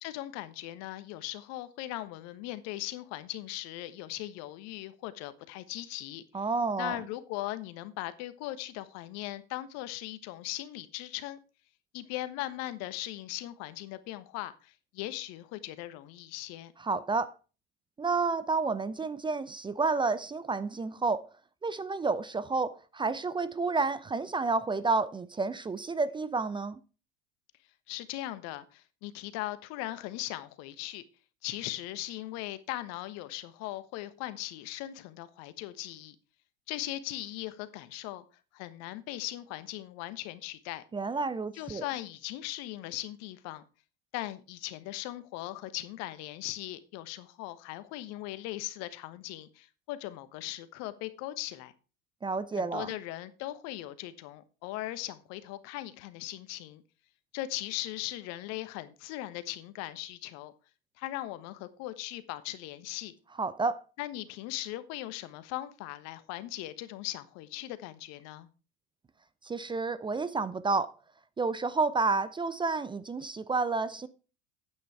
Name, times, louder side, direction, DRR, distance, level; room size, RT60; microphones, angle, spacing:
voice 1, 0.0-6.4 6.8-11.4 11.9-16.7 27.9-31.0 31.4-36.1 36.7-38.2 38.5-40.8 41.5-43.6 44.1-51.7 52.6-56.8 57.3-60.5 61.0-63.1 64.0-68.5, left 15 dB, 55° left, 1.2 m, -39 dB
voice 2, 6.3-7.0 16.8-17.3 18.0-21.3 21.6-26.8 40.9-41.9 52.2-52.9 63.4-63.8 69.4-70.9 71.4-74.1, right 4 dB, 15° right, 0.6 m, -30 dB
9.2 x 8.7 x 4.7 m
hypercardioid pair, 85°, 31 cm